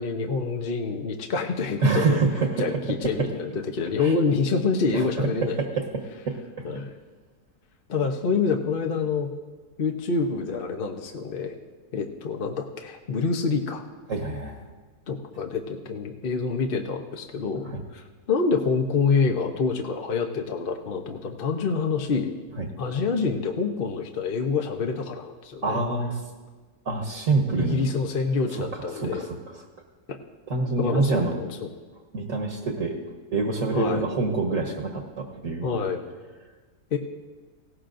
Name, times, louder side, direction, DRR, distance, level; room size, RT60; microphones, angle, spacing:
voice 1, 0.0-2.2 2.6-5.6 6.6-6.9 7.9-9.3 9.8-11.6 11.9-13.8 15.1-22.3 22.8-25.8 27.5-29.3 30.1-30.2 30.8-31.6 33.7-34.0 35.6-36.0 36.9-37.0, left 4 dB, 45° left, 3 dB, 0.8 m, -27 dB
voice 2, 1.8-2.8 3.2-3.3 4.0-4.1 4.9-5.3 5.6-5.8 6.3-6.4 14.1-14.6 17.6-17.8 22.6-22.7 25.6-26.2 26.8-27.9 28.5-29.6 30.5-31.4 32.1-32.9 33.3-36.0, right 3 dB, 55° right, 2 dB, 1.6 m, -26 dB
18.5 x 17.0 x 2.6 m, 1.4 s
omnidirectional pair, 1.7 m